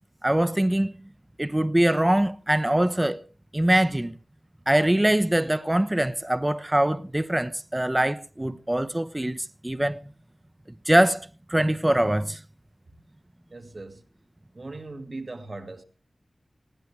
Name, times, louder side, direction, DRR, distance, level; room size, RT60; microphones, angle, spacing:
voice 1, 0.2-1.0 1.4-3.2 3.5-4.2 4.7-10.1 10.9-12.4, right 1 dB, 15° right, 0.8 m, -23 dB
voice 2, 13.5-14.0 14.5-15.8, right 2 dB, 45° right, 2.1 m, -39 dB
20.0 x 15.5 x 3.3 m
wide cardioid pair, 70°, 0 cm